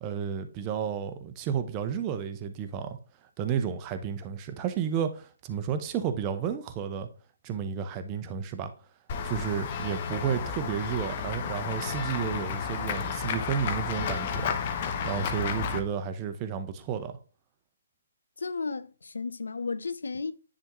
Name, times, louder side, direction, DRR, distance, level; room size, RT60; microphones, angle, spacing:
voice 1, 0.0-3.0 3.4-7.1 7.4-8.7 9.2-14.5 15.0-17.2, right 8 dB, 20° right, 0.7 m, -32 dB
Run / Walk footsteps / Bell, 9.1-15.8, left 6 dB, 35° left, 0.8 m, -32 dB
voice 2, 18.4-20.3, left 4 dB, 90° left, 0.6 m, -33 dB
9.7 x 3.5 x 3.0 m
hypercardioid pair, 155°, 0 cm